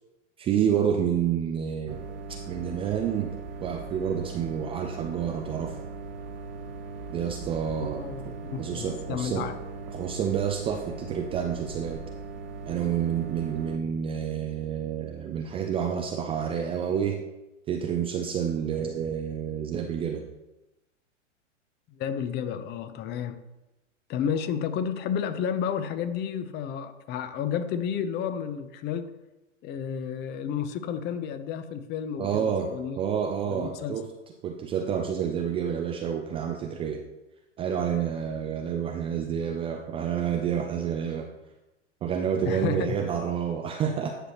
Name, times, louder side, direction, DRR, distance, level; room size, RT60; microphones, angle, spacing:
voice 1, 0.4-2.0 2.5-3.3 3.6-5.8 7.1-8.3 8.6-9.4 9.9-12.0 12.7-17.2 17.7-20.3 32.2-32.7 33.0-34.1 34.4-37.0 37.6-41.3 42.0-44.2, right 8 dB, 15° right, 3 dB, 0.4 m, -29 dB
sound 1, 1.9-13.8, right 4 dB, 50° right, 1.1 m, -39 dB
voice 2, 8.0-9.5 22.0-23.4 24.1-29.1 29.6-33.0 33.4-34.0 42.5-43.0, left 8 dB, 30° left, 11 dB, 0.7 m, -31 dB
10.0 x 6.3 x 3.0 m, 0.99 s
hypercardioid pair, 105°, 37 cm